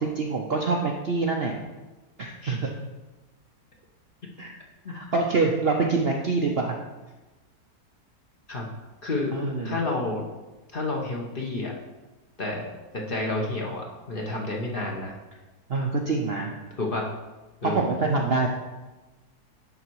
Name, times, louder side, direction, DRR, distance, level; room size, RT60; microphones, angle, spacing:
voice 1, 0.0-1.5 2.2-2.7 4.4-4.5 4.9-6.7 9.3-9.8 15.7-16.5 17.6-18.5, right 3 dB, 55° right, 1 dB, 0.7 m, -25 dB
voice 2, 9.0-9.3 9.6-10.3 10.7-11.7 12.4-12.7 12.9-15.2 16.8-17.1 17.6-17.9, left 2 dB, 40° left, -1 dB, 1.0 m, -30 dB
10.5 x 4.0 x 4.6 m, 1.1 s
omnidirectional pair, 1.7 m